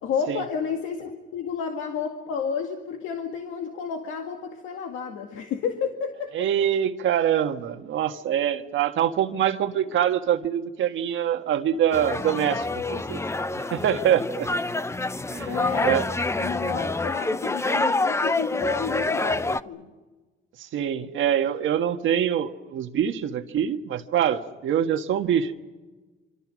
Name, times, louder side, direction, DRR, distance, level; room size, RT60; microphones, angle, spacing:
voice 1, 0.0-6.5 8.1-8.2 15.5-16.0 16.4-19.9, left 6 dB, 90° left, 3 dB, 2.1 m, -31 dB
voice 2, 6.3-13.2 13.5-14.5 15.3-16.0 20.6-25.5, right 9 dB, 75° right, 7 dB, 1.6 m, -24 dB
sound 1, 11.9-19.6, left 2 dB, 15° left, 0.7 m, -27 dB
25.5 x 25.5 x 6.4 m, 1.2 s
cardioid pair, 90°, 20 cm